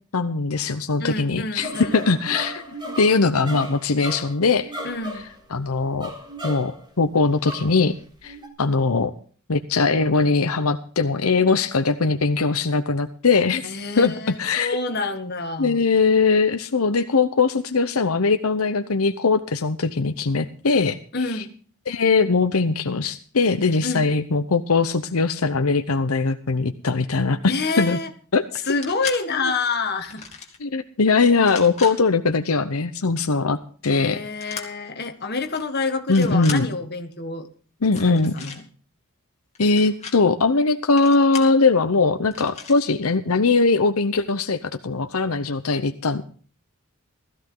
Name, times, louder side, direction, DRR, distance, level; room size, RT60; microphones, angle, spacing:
voice 1, 0.1-2.6 3.0-4.7 5.5-6.1 6.4-7.9 8.2-9.1 9.5-14.8 15.6-21.0 21.9-28.0 28.3-28.4 29.4-29.5 30.6-33.6 33.8-34.2 36.1-36.7 37.8-38.3 39.6-46.2, left 4 dB, 80° left, 9 dB, 0.9 m, -21 dB
voice 2, 1.0-2.1 4.8-5.3 13.6-15.8 21.1-21.5 23.8-24.1 27.5-28.1 28.7-30.2 33.9-37.5 38.0-38.6, left 3 dB, 50° left, 6 dB, 1.6 m, -28 dB
sound 1, 1.6-6.8 7.4-7.8 8.2-8.5, equal, 20° right, 3.9 m, -35 dB
sound 2, 28.6-29.2 30.0-30.6 31.3-31.9 34.4-34.7 35.4-35.6 36.0-36.6 37.8-38.6 39.5-40.1 41.0-41.5 42.3-42.8, left 6 dB, 30° left, 2.6 m, -36 dB
16.0 x 14.5 x 3.9 m, 0.42 s
head